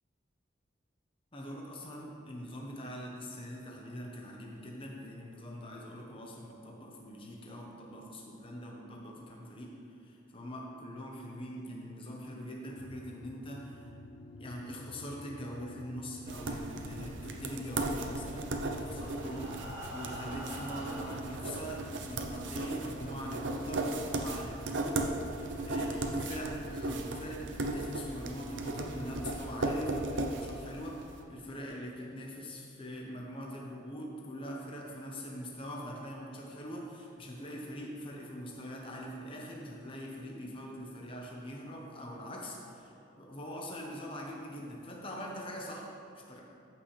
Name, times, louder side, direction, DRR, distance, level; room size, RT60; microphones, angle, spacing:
voice 1, 1.3-9.7 10.0-13.9 14.4-42.6 43.2-46.4, equal, 30° left, -1 dB, 1.0 m, -43 dB
sound 1, 12.7-24.9, left 2 dB, 70° left, 0.4 m, -52 dB
sound 2, 16.3-31.1, right 2 dB, 70° right, 0.7 m, -36 dB
Breathing, 18.4-21.4 22.1-22.2 22.6-22.7 23.1-23.2, right 1 dB, 15° right, 2.2 m, -45 dB
14.0 x 5.8 x 3.3 m, 2.7 s
head